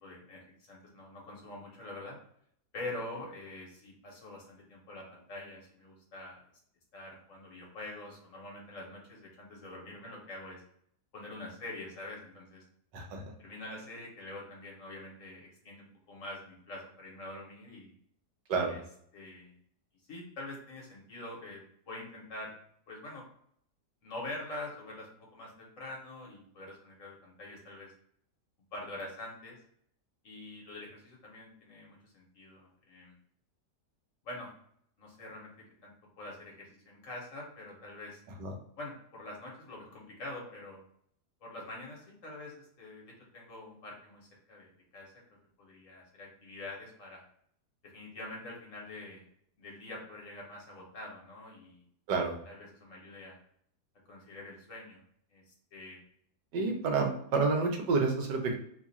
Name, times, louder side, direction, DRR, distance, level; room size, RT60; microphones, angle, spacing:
voice 1, 0.0-2.2 2.7-6.4 6.9-10.6 11.1-12.6 13.4-17.9 18.6-18.8 19.1-19.6 20.1-22.5 22.9-23.2 24.0-25.1 25.3-27.9 28.7-29.6 30.2-33.1 34.2-34.5 35.0-35.5 35.8-35.9 36.2-38.2 38.8-40.8 41.4-45.1 45.6-47.2 47.9-49.2 49.6-51.8 52.5-53.4 54.1-55.0 55.3-56.0, left 2 dB, 55° left, -2 dB, 1.2 m, -45 dB
voice 2, 56.5-58.6, right 4 dB, 90° right, 2 dB, 1.4 m, -29 dB
3.3 x 2.4 x 4.0 m, 0.66 s
omnidirectional pair, 1.8 m